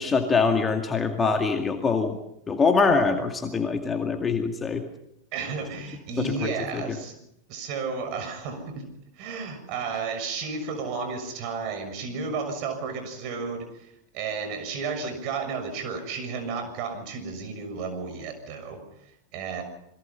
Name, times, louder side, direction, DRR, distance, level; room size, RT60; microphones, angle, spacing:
voice 1, 0.0-2.2 2.5-4.8 6.2-6.8, left 4 dB, 15° left, 4 dB, 2.2 m, -24 dB
voice 2, 5.3-7.1 7.5-8.8 9.2-19.6, right 5 dB, 45° right, 8 dB, 6.5 m, -33 dB
28.0 x 22.0 x 5.6 m, 0.77 s
figure-of-eight pair, 90°, 0 cm